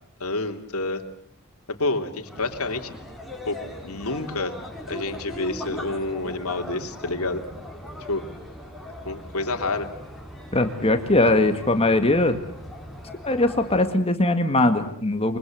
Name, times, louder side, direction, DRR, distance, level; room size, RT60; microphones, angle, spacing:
voice 1, 0.2-1.0 1.7-3.0 3.5-4.6 4.9-7.4 8.1-8.2 9.0-9.9, left 2 dB, 70° left, 4 dB, 3.1 m, -28 dB
sound 1, 2.2-14.0, left 1 dB, ahead, 5.9 m, -39 dB
voice 2, 10.5-12.4 13.2-15.4, left 2 dB, 25° left, 7 dB, 1.9 m, -20 dB
28.5 x 24.5 x 7.8 m, 0.63 s
head